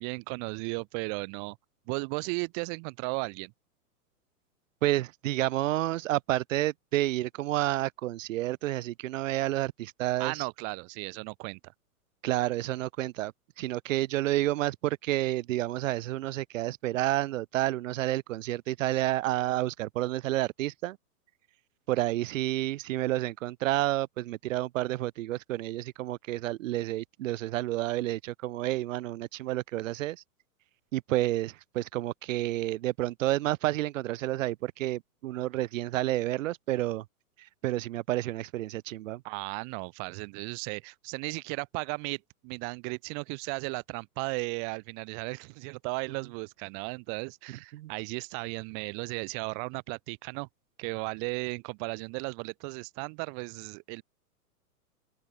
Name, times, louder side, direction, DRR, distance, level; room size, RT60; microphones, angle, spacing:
voice 1, 0.0-1.6 1.9-3.5 10.2-11.7 39.2-50.5 50.8-54.0, right 40 dB or more, 35° right, 1.4 m, -35 dB
voice 2, 4.8-10.4 12.2-21.0 21.9-30.2 30.9-37.0 37.6-39.2 46.1-46.2 47.7-47.9, right 15 dB, 55° right, 0.6 m, -30 dB
hypercardioid pair, 125°, 46 cm